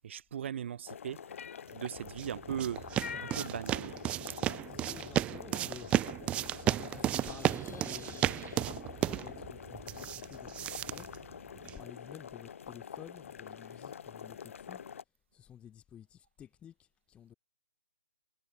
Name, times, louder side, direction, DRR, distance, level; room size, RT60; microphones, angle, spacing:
voice 1, 0.0-1.2 1.7-2.8 3.2-3.9, right 9 dB, 45° right, 1.3 m, -38 dB
sound 1, 0.9-15.0, left 7 dB, 50° left, 2.7 m, -46 dB
sound 2, 1.9-11.9, right 13 dB, 10° right, 0.5 m, -34 dB
voice 2, 4.1-5.9 6.4-11.1 11.8-14.8 15.3-16.7 17.1-17.3, left 9 dB, 10° left, 2.3 m, -52 dB
Wind, 4.9-15.0, left 2 dB, 80° left, 7.1 m, -62 dB
figure-of-eight pair, 135°, 9 cm